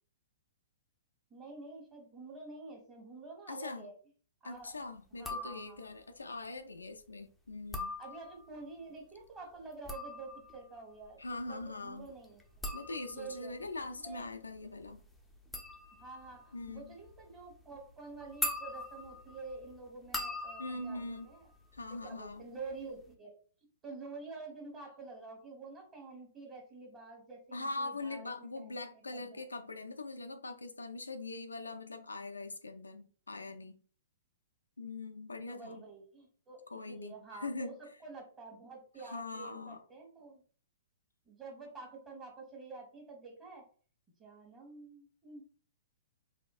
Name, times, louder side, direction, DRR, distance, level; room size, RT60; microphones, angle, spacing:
voice 1, 1.3-3.9 4.4-4.8 5.1-5.9 8.0-11.2 11.5-12.4 13.1-13.5 14.0-14.3 15.9-21.4 21.9-23.3 23.8-28.8 29.1-29.4 35.5-40.4 41.2-43.7 44.2-45.4, right 3 dB, 20° right, 1.3 m, -48 dB
voice 2, 3.5-3.9 4.4-7.9 11.2-12.1 12.7-15.0 16.5-16.9 20.6-21.3 21.7-22.4 27.5-33.8 34.8-35.8 36.7-37.8 39.0-39.8, left 2 dB, 80° left, 0.4 m, -42 dB
sound 1, 5.1-6.0 7.5-8.6 9.6-22.3 22.6-23.1, left 2 dB, 5° left, 0.6 m, -43 dB
4.2 x 2.3 x 2.4 m
figure-of-eight pair, 115°, 0 cm